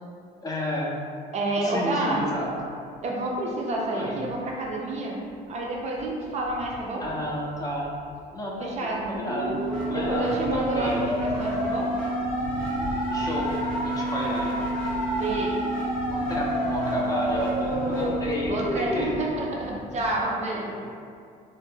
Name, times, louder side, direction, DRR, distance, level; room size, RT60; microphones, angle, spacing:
voice 1, 0.4-1.0 1.6-2.5 3.9-4.2 7.0-7.9 8.3-11.1 13.1-14.7 16.1-19.2 20.5-20.9, equal, 20° left, -3 dB, 0.4 m, -31 dB
voice 2, 1.3-2.2 3.0-5.2 5.5-7.0 8.6-9.1 9.9-11.9 15.2-15.6 18.5-20.8, right 2 dB, 40° right, -2 dB, 0.4 m, -29 dB
sound 1, 2.1-20.2, left 1 dB, 85° left, 0.5 m, -44 dB
sound 2, 9.1-19.1, right 1 dB, 5° left, 0.8 m, -28 dB
2.2 x 2.1 x 3.1 m, 2.3 s
cardioid pair, 110°, 17 cm